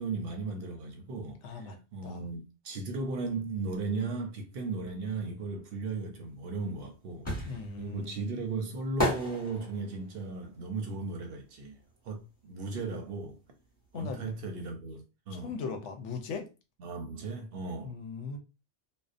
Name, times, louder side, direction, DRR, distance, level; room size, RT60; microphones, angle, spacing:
voice 1, 0.0-11.8 12.0-13.4 13.9-15.5 16.8-17.9, right 3 dB, 65° right, 0.7 m, -36 dB
voice 2, 1.4-1.8 2.0-2.2 7.4-8.2 13.9-14.3 15.3-16.5 17.8-18.4, left 5 dB, 90° left, 0.9 m, -38 dB
sound 1, 6.4-12.2 12.5-14.1 14.4-14.5, equal, 10° left, 1.2 m, -35 dB
2.6 x 2.1 x 2.4 m
omnidirectional pair, 1.2 m